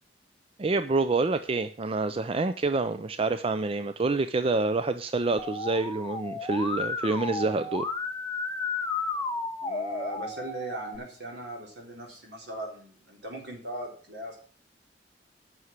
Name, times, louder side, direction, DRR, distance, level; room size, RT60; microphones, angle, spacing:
voice 1, 0.6-7.8, right 3 dB, 35° right, 11 dB, 0.5 m, -27 dB
Musical instrument, 5.4-11.0, left 4 dB, 20° left, 1.0 m, -33 dB
voice 2, 9.6-14.4, right 1 dB, 70° right, 1 dB, 3.7 m, -39 dB
9.6 x 6.3 x 7.3 m, 0.44 s
head